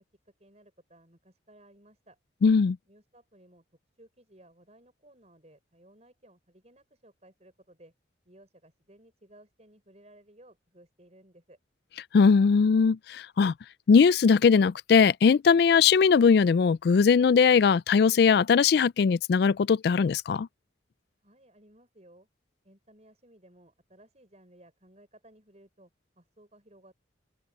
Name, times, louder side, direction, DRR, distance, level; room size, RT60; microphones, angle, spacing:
voice 1, 0.0-2.2 2.9-3.6 4.0-7.9 8.2-11.6 21.2-22.3 22.6-25.9 26.2-26.9, right 1 dB, 35° right, 6.5 m, -58 dB
voice 2, 2.4-2.8 12.1-13.5 13.9-20.5, left 5 dB, 55° left, 0.3 m, -20 dB
open air
head